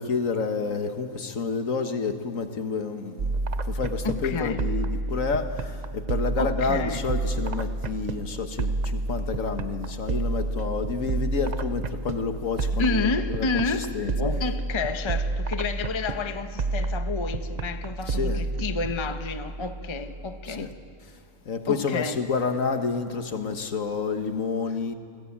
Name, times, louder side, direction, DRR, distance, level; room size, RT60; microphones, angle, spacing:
voice 1, 0.0-3.3 3.6-14.1 18.1-18.4 20.4-20.7 21.1-21.2 21.4-24.9, left 4 dB, 60° left, 1.7 m, -29 dB
sound 1, 3.2-20.8, right 2 dB, 50° right, 0.5 m, -30 dB
voice 2, 4.0-4.6 6.4-7.0 12.8-13.9 14.2-20.7 21.7-22.2, left 4 dB, 20° left, 0.9 m, -30 dB
29.0 x 18.5 x 8.7 m
omnidirectional pair, 1.6 m